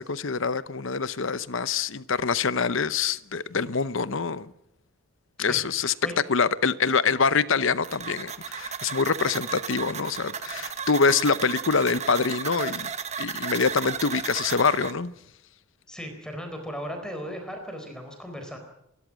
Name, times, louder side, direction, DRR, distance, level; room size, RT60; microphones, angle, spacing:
voice 1, 0.0-4.5 5.4-5.9 6.3-12.9 13.2-15.1, left 5 dB, 65° left, 0.8 m, -25 dB
voice 2, 5.4-6.1 15.9-18.6, equal, 5° left, 4.0 m, -37 dB
sound 1, 7.8-14.9, right 6 dB, 30° right, 1.1 m, -34 dB
28.0 x 13.5 x 7.5 m
head